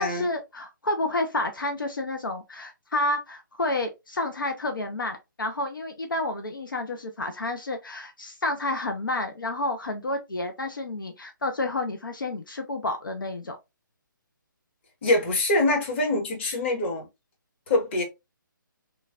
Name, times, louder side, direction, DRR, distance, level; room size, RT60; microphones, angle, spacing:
voice 1, 0.0-13.6, left 2 dB, 75° left, 0.5 m, -30 dB
voice 2, 15.0-17.1 17.7-18.0, left 2 dB, 35° left, 1.0 m, -24 dB
3.1 x 2.2 x 2.4 m
figure-of-eight pair, 140°, 11 cm